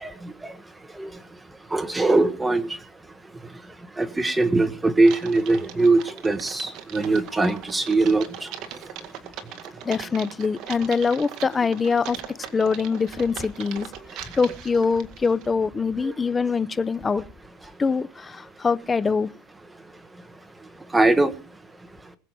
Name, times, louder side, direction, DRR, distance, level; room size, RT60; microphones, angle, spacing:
voice 1, 0.0-0.3 1.0-1.1 1.7-2.7 4.0-8.5 16.0-16.1 20.9-21.3, right 2 dB, 10° right, 1.4 m, -21 dB
Typing, 5.0-15.5, right 10 dB, 55° right, 1.9 m, -40 dB
voice 2, 9.8-12.2 12.5-13.9 14.3-17.2 17.8-19.3, left 5 dB, 15° left, 0.6 m, -24 dB
21.0 x 7.5 x 4.6 m
supercardioid pair, 130°, 0 cm